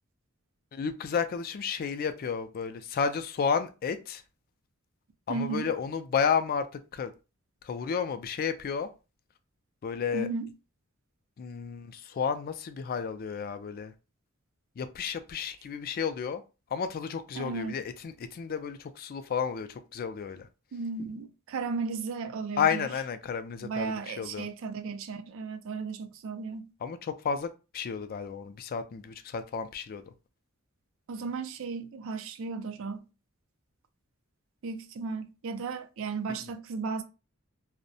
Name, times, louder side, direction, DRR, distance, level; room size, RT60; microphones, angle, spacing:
voice 1, 0.7-4.2 5.3-7.1 7.6-8.9 9.8-10.3 11.4-13.9 14.8-16.4 16.7-20.5 22.6-24.5 26.8-30.0 36.4-36.5, left 6 dB, 45° left, 0.3 m, -32 dB
voice 2, 5.3-5.7 10.1-10.5 17.3-17.8 20.7-22.9 23.6-26.7 31.1-33.1 34.6-37.0, right 4 dB, 65° right, 0.4 m, -35 dB
2.6 x 2.0 x 2.6 m
head